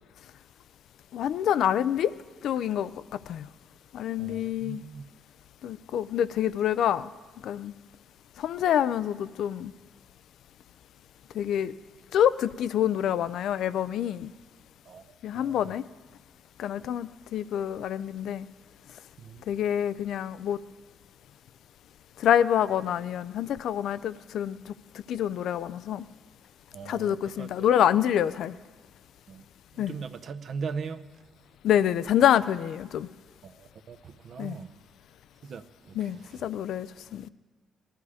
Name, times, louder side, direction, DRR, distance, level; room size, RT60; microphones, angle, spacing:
voice 1, 1.1-2.1 2.4-2.9 3.3-3.5 3.9-4.8 5.6-7.1 7.4-7.7 8.4-9.7 11.3-11.7 12.1-14.3 15.2-15.8 16.6-18.5 19.5-20.6 22.2-24.7 25.1-26.0 26.9-28.5 29.8-29.9 31.6-33.1 34.4-34.6 35.9-37.3, left 10 dB, 75° left, 0.4 m, -26 dB
voice 2, 4.2-5.0 14.9-15.7 19.2-19.5 26.7-27.5 29.3-29.5 29.7-31.0 33.4-34.7 35.4-36.1, right 5 dB, 55° right, 0.7 m, -40 dB
18.5 x 12.0 x 4.9 m
cardioid pair, 90°, 0 cm